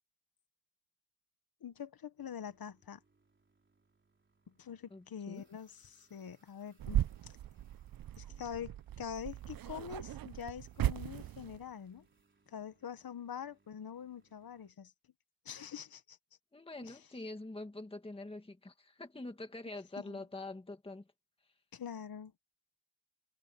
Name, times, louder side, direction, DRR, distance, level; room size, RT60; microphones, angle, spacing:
voice 1, 1.6-3.0 4.6-7.3 8.2-12.0 12.5-14.9 15.4-16.2 16.8-17.0 20.0-20.2 21.7-22.3, left 8 dB, 75° left, 1.3 m, -45 dB
sound 1, 2.2-14.7, right 3 dB, 30° right, 3.8 m, -73 dB
voice 2, 4.9-5.5 16.5-21.1, left 2 dB, 15° left, 1.6 m, -45 dB
sound 2, 6.8-11.7, right 12 dB, 70° right, 0.5 m, -37 dB
wide cardioid pair, 170°, 37 cm